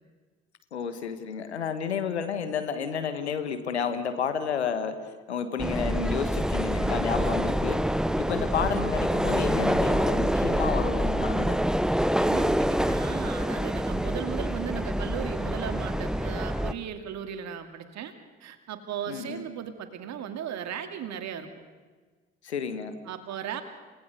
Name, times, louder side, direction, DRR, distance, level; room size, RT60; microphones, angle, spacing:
voice 1, 0.7-7.8 8.2-11.6 19.1-19.4 22.4-23.0, left 7 dB, 85° left, 9 dB, 1.4 m, -31 dB
sound 1, 5.6-16.7, equal, ahead, 1.0 m, -26 dB
voice 2, 12.2-18.1 18.4-21.5 23.1-23.6, right 9 dB, 55° right, 8 dB, 2.3 m, -36 dB
28.5 x 18.5 x 6.7 m, 1.4 s
figure-of-eight pair, 45°, 32 cm